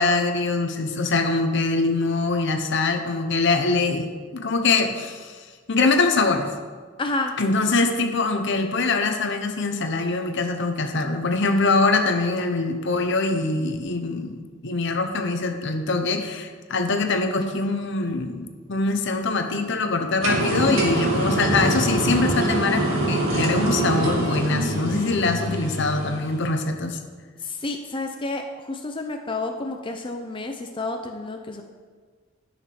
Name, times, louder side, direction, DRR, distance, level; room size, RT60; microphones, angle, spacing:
voice 1, 0.0-5.4 5.7-6.5 7.4-27.0, left 3 dB, 60° left, 6 dB, 0.9 m, -23 dB
voice 2, 7.0-7.3 27.4-31.6, left 2 dB, 25° left, 3 dB, 0.6 m, -30 dB
sound 1, 20.2-26.5, right 1 dB, 85° right, 2.7 m, -24 dB
11.0 x 5.9 x 6.0 m, 1.5 s
head